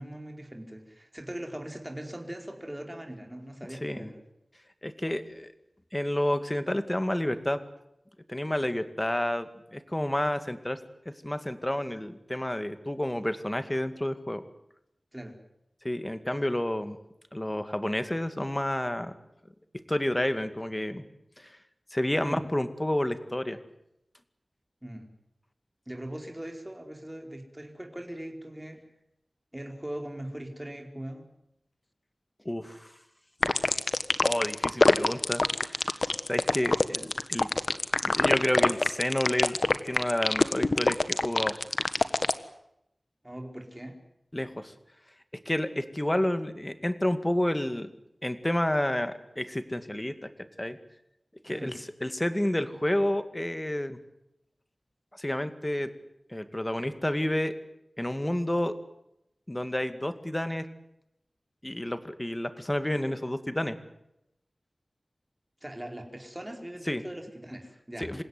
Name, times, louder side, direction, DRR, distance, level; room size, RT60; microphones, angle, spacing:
voice 1, 0.0-4.2 15.1-15.4 22.2-22.4 24.8-25.1 25.9-28.8 29.5-31.3 43.2-44.0 51.5-51.8 65.6-68.2, right 1 dB, 15° right, 3 dB, 4.8 m, -40 dB
voice 2, 4.8-5.5 5.9-7.6 8.3-10.8 11.1-14.4 15.8-17.0 17.3-19.1 19.9-21.0 21.4-21.6 21.9-23.6 32.5-32.9 34.2-35.9 36.3-37.5 38.0-39.6 39.8-41.6 44.3-44.7 45.3-47.9 48.2-50.3 50.6-50.8 51.4-51.7 52.0-54.0 55.2-55.9 56.3-57.6 58.0-58.8 59.5-60.7 61.6-63.8 66.9-67.0 68.0-68.2, left 1 dB, 20° left, 10 dB, 2.2 m, -30 dB
sound 1, 33.4-42.3, left 2 dB, 55° left, 1.4 m, -24 dB
27.5 x 16.5 x 9.6 m, 0.83 s
wide cardioid pair, 60°, 0 cm